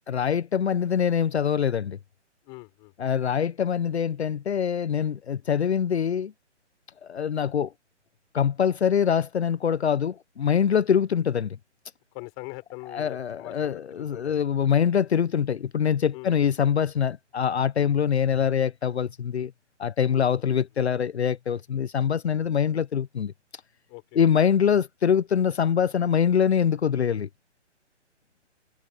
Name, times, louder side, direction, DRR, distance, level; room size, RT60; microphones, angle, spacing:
voice 1, 0.1-2.0 3.0-6.3 7.0-7.7 8.3-11.6 12.9-19.5 19.8-23.3 24.1-27.3, left 8 dB, 65° left, 0.9 m, -24 dB
voice 2, 2.4-2.9 12.1-14.4 16.1-16.3 17.8-18.0 20.1-20.6 23.9-24.2, left 28 dB, 15° left, 4.4 m, -42 dB
hypercardioid pair, 175°, 36 cm